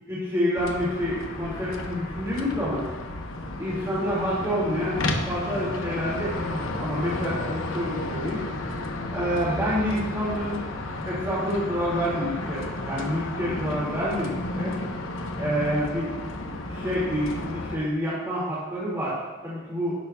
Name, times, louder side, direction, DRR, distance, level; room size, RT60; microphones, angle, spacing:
voice 1, 0.1-2.8 3.5-8.7 9.1-10.6 11.0-14.7 15.4-16.1 16.7-19.2 19.4-19.9, equal, 15° right, -9 dB, 2.2 m, -28 dB
sound 1, 0.5-17.8, left 2 dB, 85° left, 1.0 m, -32 dB
11.0 x 11.0 x 2.3 m, 1.3 s
head